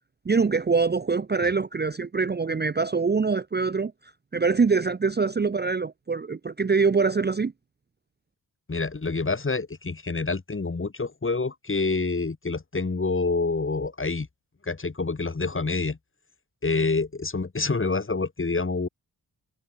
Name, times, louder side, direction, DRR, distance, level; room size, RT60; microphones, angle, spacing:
voice 1, 0.3-3.9 4.3-7.5, right 4 dB, 25° right, 0.7 m, -24 dB
voice 2, 8.7-14.3 14.6-16.0 16.6-18.9, left 3 dB, 30° left, 2.1 m, -27 dB
cardioid pair, 60°, 41 cm